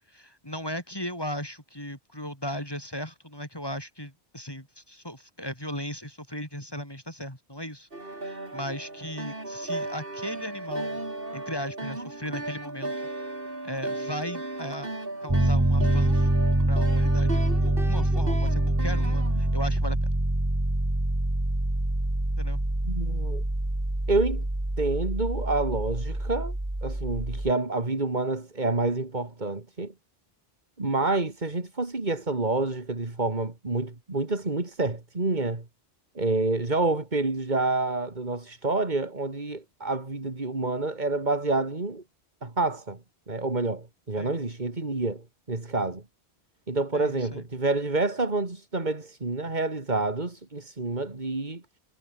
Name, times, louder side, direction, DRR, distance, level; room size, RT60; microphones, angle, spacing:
voice 1, 0.1-7.9 8.2-11.0 11.3-12.9 13.6-14.9 15.2-16.4 16.7-20.1 22.4-22.6 44.2-44.3 46.9-47.4, equal, 20° left, 6.5 m, -37 dB
sound 1, 7.9-19.8, right 2 dB, 60° right, 4.4 m, -36 dB
Piano, 15.3-27.5, right 1 dB, 15° right, 2.1 m, -25 dB
voice 2, 22.8-23.4 24.1-24.5 24.8-26.5 26.8-29.9 30.8-35.6 36.1-42.0 42.4-43.0 43.3-46.0 46.7-51.6, right 2 dB, 45° right, 2.8 m, -28 dB
omnidirectional pair, 1.1 m